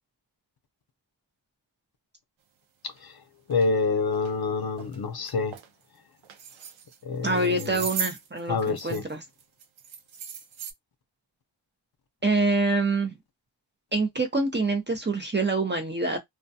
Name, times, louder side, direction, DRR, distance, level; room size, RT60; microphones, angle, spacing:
voice 1, 2.8-3.2 3.5-5.6 7.0-7.9 8.5-9.0, left 4 dB, 55° left, 0.6 m, -27 dB
sound 1, 2.9-3.0 3.5-3.7 4.1-4.3 4.8-5.0 5.3-5.7 6.2-7.0 7.3-9.1 9.4-10.7, right 7 dB, 80° right, 0.6 m, -37 dB
voice 2, 7.2-9.2 12.2-13.2 13.9-16.2, right 3 dB, 25° right, 0.6 m, -26 dB
2.3 x 2.2 x 2.7 m
wide cardioid pair, 95°, 46 cm